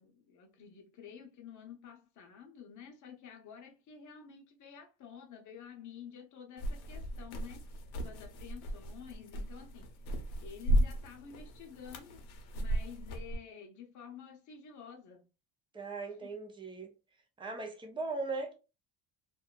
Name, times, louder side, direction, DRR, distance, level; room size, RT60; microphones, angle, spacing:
voice 1, 0.0-7.6 8.0-9.9 10.4-12.2 12.5-15.3 16.2-16.4, left 7 dB, 40° left, 0.7 m, -50 dB
sound 1, 6.6-13.3, right 1 dB, 80° left, 0.7 m, -35 dB
voice 2, 15.7-16.9 17.4-18.5, right 3 dB, 10° right, 0.4 m, -38 dB
2.6 x 2.3 x 2.2 m
cardioid pair, 155°, 45 cm